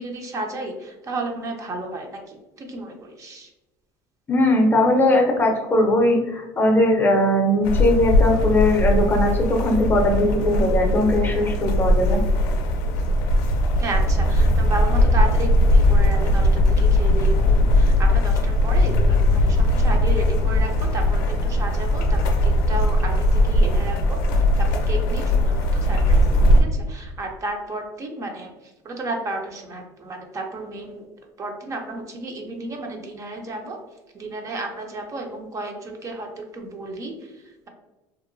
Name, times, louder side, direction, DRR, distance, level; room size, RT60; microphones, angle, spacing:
voice 1, 0.0-3.5 13.8-31.1 31.4-33.8 34.1-37.7, right 2 dB, 35° right, 2 dB, 0.4 m, -33 dB
voice 2, 4.3-12.2, left 1 dB, 20° left, 1 dB, 0.5 m, -19 dB
sound 1, 7.6-26.6, left 1 dB, 85° left, 0.4 m, -19 dB
2.8 x 2.1 x 2.5 m, 1.0 s
supercardioid pair, 115°, 10 cm